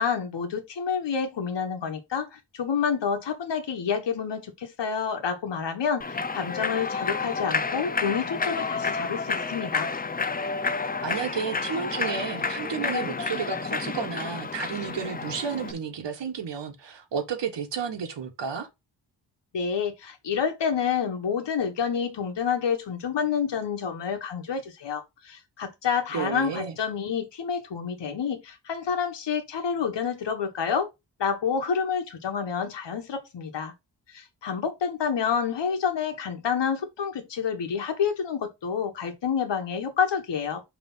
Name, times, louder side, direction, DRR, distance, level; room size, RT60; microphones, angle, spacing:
voice 1, 0.0-9.9 19.5-30.9 31.2-33.7 34.1-40.6, left 7 dB, 75° left, 1.4 m, -28 dB
Human voice / Clapping / Cheering, 6.0-15.7, left 4 dB, 20° left, 0.5 m, -30 dB
voice 2, 11.0-18.7 26.1-26.7, right 6 dB, 70° right, 1.5 m, -32 dB
5.7 x 3.5 x 5.5 m
wide cardioid pair, 170°, 43 cm